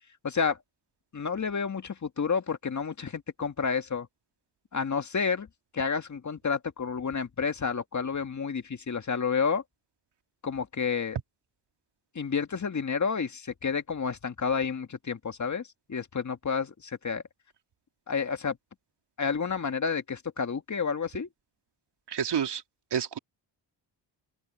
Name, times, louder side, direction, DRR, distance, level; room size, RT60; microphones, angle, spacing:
voice 1, 0.2-0.6 1.1-4.1 4.7-5.5 5.7-9.6 10.4-11.2 12.2-17.2 18.1-18.6 19.2-21.3, left 5 dB, 40° left, 2.0 m, -30 dB
voice 2, 22.1-22.6 22.9-23.2, right 8 dB, 65° right, 2.8 m, -29 dB
cardioid pair, 75°, 45 cm